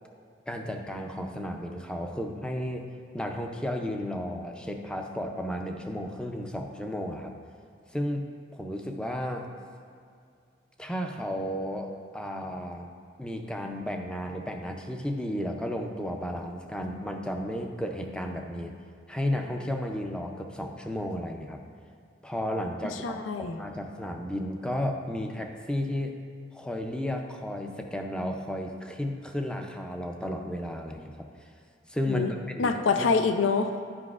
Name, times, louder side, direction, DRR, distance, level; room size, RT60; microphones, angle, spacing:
voice 1, 0.5-2.8 3.1-7.3 7.9-8.2 8.5-9.5 10.8-12.9 13.2-18.7 19.1-21.6 22.2-23.2 23.6-26.1 26.5-31.3 31.9-32.8, equal, 5° left, 3 dB, 0.4 m, -33 dB
voice 2, 22.8-23.6 32.1-32.3 32.6-33.7, left 4 dB, 85° left, 7 dB, 0.4 m, -26 dB
9.8 x 5.1 x 2.4 m, 2.3 s
head